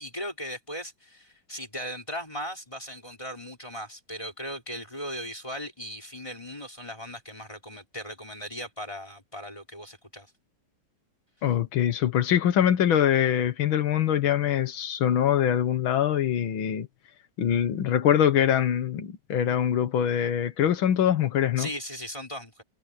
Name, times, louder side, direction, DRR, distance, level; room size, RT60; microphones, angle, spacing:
voice 1, 0.0-10.3 21.6-22.6, equal, 15° left, 3.7 m, -38 dB
voice 2, 11.4-16.9 17.4-21.7, left 10 dB, 85° left, 2.0 m, -23 dB
omnidirectional pair, 2.2 m